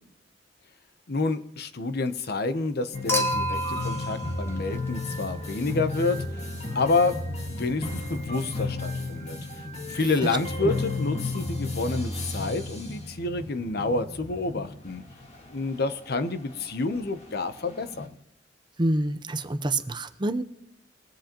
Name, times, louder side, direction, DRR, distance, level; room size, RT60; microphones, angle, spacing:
voice 1, 1.1-6.2 6.7-7.1 7.5-9.4 9.9-15.0 15.5-18.2, left 3 dB, 60° left, 10 dB, 0.9 m, -28 dB
sound 1, 2.9-18.1, left 2 dB, 40° left, 1.9 m, -34 dB
Human group actions / Chink clink / Liquid, 3.1-5.5 7.0-7.1, right 1 dB, 15° left, 1.5 m, -30 dB
voice 2, 18.8-20.4, right 1 dB, 25° right, 8 dB, 0.8 m, -27 dB
23.0 x 7.8 x 3.0 m, 0.83 s
head